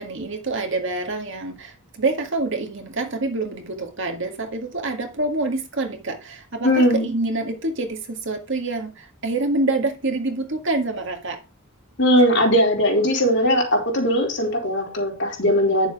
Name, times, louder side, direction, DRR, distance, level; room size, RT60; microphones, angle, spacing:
voice 1, 0.0-11.4, right 2 dB, 60° right, 4 dB, 2.0 m, -26 dB
voice 2, 6.6-7.1 12.0-15.9, equal, 55° left, 1 dB, 3.9 m, -19 dB
10.0 x 6.9 x 4.8 m, 0.32 s
head